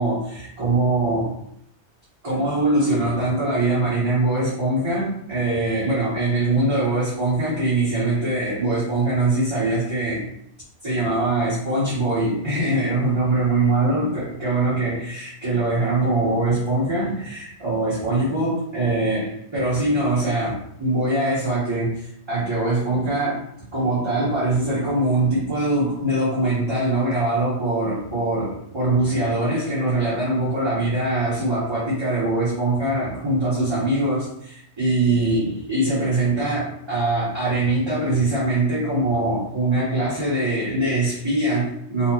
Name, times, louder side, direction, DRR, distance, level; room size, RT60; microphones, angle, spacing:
voice 1, 0.0-1.3 2.2-10.2 10.8-23.4 23.7-42.1, right 2 dB, 25° right, -9 dB, 1.0 m, -22 dB
4.1 x 2.4 x 2.8 m, 0.71 s
omnidirectional pair, 1.2 m